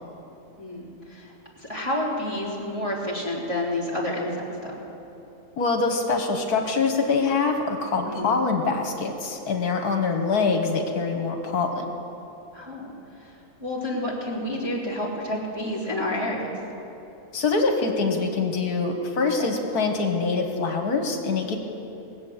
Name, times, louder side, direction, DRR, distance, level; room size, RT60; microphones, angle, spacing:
voice 1, 0.6-1.3 1.6-4.7 8.1-8.4 12.5-12.9 13.2-13.3 13.6-16.5 19.4-19.5, left 1 dB, 20° right, -6 dB, 3.3 m, -29 dB
voice 2, 5.6-11.8 17.3-21.6, left 4 dB, 70° left, 4 dB, 1.6 m, -24 dB
20.0 x 8.0 x 7.9 m, 2.9 s
omnidirectional pair, 1.7 m